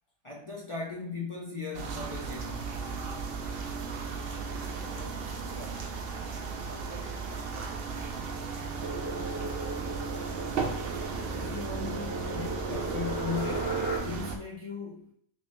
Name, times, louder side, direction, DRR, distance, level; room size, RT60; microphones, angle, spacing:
voice 1, 0.2-2.9 10.4-10.6 11.3-15.1, left 5 dB, 55° left, 0.3 m, -38 dB
sound 1, 1.7-14.4, right 5 dB, 60° right, 0.7 m, -36 dB
voice 2, 4.2-5.8 6.6-7.9, equal, 70° left, 1.5 m, -49 dB
sound 2, 8.8-14.0, right 3 dB, 35° left, 1.6 m, -36 dB
3.3 x 3.1 x 2.8 m
omnidirectional pair, 1.2 m